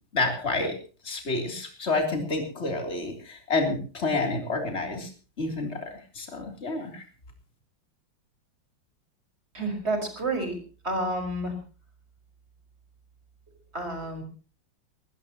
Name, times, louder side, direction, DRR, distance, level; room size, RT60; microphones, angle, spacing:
voice 1, 0.1-0.8 1.0-5.1 5.4-5.8 6.2-7.0, left 3 dB, 35° left, 3 dB, 3.7 m, -29 dB
voice 2, 9.5-10.5 10.8-11.5 13.7-14.2, right 2 dB, 30° right, 5 dB, 5.4 m, -29 dB
20.0 x 18.5 x 3.0 m, 0.36 s
omnidirectional pair, 2.1 m